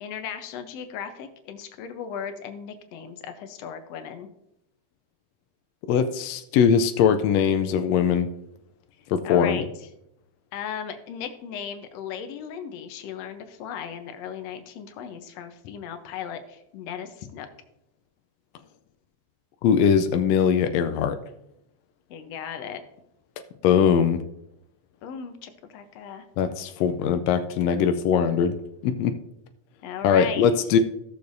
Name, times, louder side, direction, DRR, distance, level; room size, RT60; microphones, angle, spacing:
voice 1, 0.0-4.3 9.2-9.7 10.5-17.5 22.1-22.8 25.0-26.2 29.8-30.4, left 8 dB, 70° left, 8 dB, 1.7 m, -36 dB
voice 2, 5.9-8.3 9.1-9.6 19.6-21.2 23.6-24.2 26.4-28.5 28.8-29.1 30.0-30.8, left 7 dB, 90° left, 7 dB, 1.5 m, -21 dB
15.5 x 6.7 x 2.6 m, 0.80 s
omnidirectional pair, 3.6 m